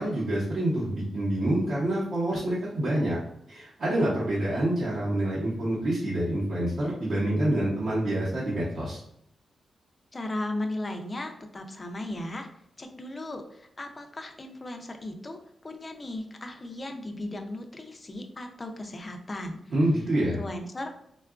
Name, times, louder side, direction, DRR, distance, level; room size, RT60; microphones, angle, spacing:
voice 1, 0.0-3.2 3.5-9.0 19.7-20.4, right 1 dB, 55° right, -8 dB, 0.7 m, -27 dB
voice 2, 10.1-12.5 12.8-19.6 20.2-21.0, left 1 dB, 20° left, 4 dB, 0.3 m, -36 dB
3.6 x 2.2 x 2.3 m, 0.73 s
wide cardioid pair, 175°, 0 cm